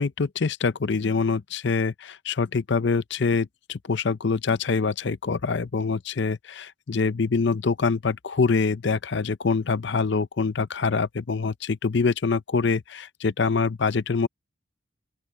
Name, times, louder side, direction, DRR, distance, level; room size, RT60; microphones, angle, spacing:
voice 1, 0.0-14.3, left 4 dB, 60° left, 0.6 m, -25 dB
open air
head